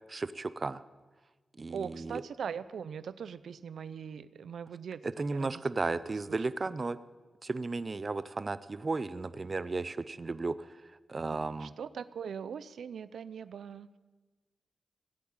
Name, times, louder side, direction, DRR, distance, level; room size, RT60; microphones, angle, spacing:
voice 1, 0.1-0.8 1.6-2.2 5.0-7.0 7.4-10.7 11.1-11.7, right 3 dB, 35° right, 14 dB, 0.5 m, -34 dB
voice 2, 1.7-5.6 11.3-14.0, right 7 dB, 85° right, 15 dB, 0.5 m, -41 dB
17.0 x 8.4 x 8.8 m, 1.3 s
wide cardioid pair, 100°, 0 cm